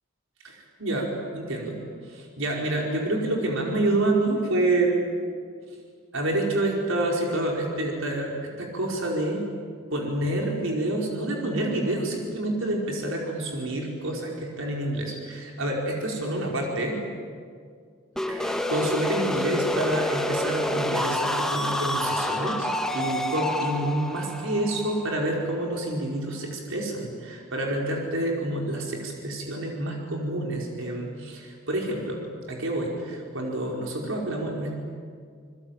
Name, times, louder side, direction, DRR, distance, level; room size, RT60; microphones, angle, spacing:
voice 1, 0.4-5.0 6.1-9.4 9.9-17.0 18.3-32.2 32.5-34.7, right 1 dB, 75° right, -1 dB, 4.9 m, -28 dB
sound 1, 18.2-25.9, left 1 dB, ahead, 1.3 m, -28 dB
29.0 x 22.0 x 9.0 m, 2.1 s
head